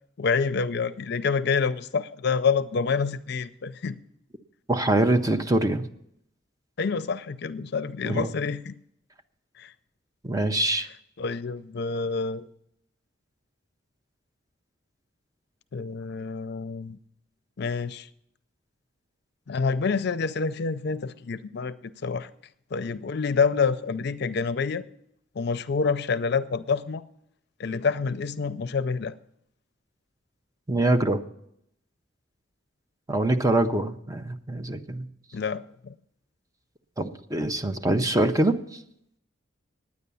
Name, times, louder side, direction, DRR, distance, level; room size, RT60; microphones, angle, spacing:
voice 1, 0.2-4.0 6.8-8.8 9.6-9.7 11.2-12.5 15.7-17.0 17.6-18.1 19.5-21.7 22.0-22.3 22.7-24.8 25.3-27.0 27.6-29.1 35.3-35.9, left 5 dB, 60° left, 0.5 m, -27 dB
voice 2, 4.7-5.9 8.0-8.3 10.2-10.9 30.7-31.2 33.1-35.1 37.0-38.8, right 2 dB, 20° right, 0.6 m, -24 dB
9.6 x 9.6 x 6.9 m
head